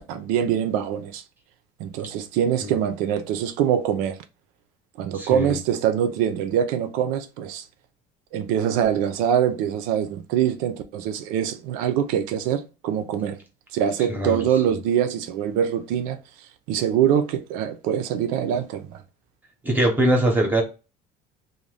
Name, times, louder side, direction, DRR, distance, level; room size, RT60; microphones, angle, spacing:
voice 1, 0.1-1.2 1.8-4.2 5.0-7.6 8.3-13.4 13.7-16.2 16.7-19.0, right 9 dB, 80° right, 0.5 m, -24 dB
voice 2, 5.1-5.6 14.1-14.5 19.6-20.6, right 1 dB, 15° right, 0.7 m, -22 dB
2.6 x 2.1 x 3.2 m
cardioid pair, 150°, 14 cm